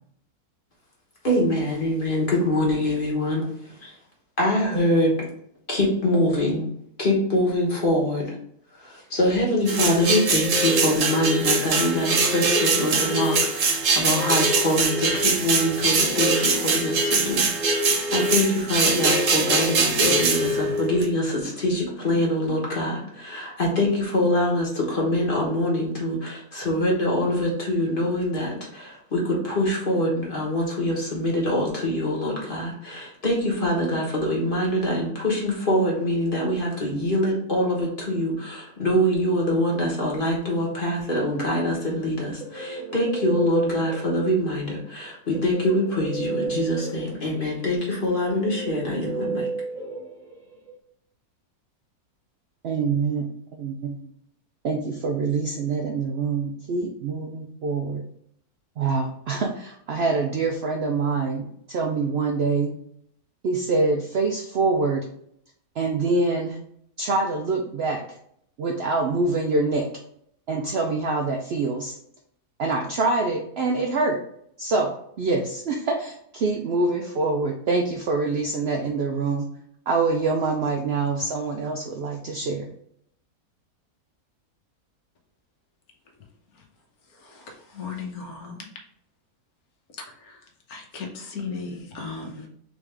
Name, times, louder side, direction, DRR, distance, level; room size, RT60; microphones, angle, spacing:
voice 1, 1.2-4.0 4.4-5.3 5.7-6.7 7.0-8.4 8.7-49.5, left 1 dB, 35° left, -3 dB, 1.3 m, -24 dB
sound 1, 9.7-21.1, right 3 dB, 60° right, 1.1 m, -22 dB
Guitar, 42.0-44.6 45.3-50.7, right 4 dB, 35° right, 0.9 m, -33 dB
voice 2, 52.6-54.1 54.6-58.0 58.8-62.7 63.4-65.1 65.8-66.6 67.0-68.2 68.6-69.9 70.5-72.0 72.6-74.2 74.6-79.5 79.9-82.7, right 3 dB, 80° right, 1 dB, 0.5 m, -25 dB
voice 3, 87.2-88.6 90.2-90.4 90.7-92.5, left 5 dB, 70° left, 2 dB, 1.3 m, -36 dB
3.9 x 3.5 x 3.3 m, 0.68 s
omnidirectional pair, 1.7 m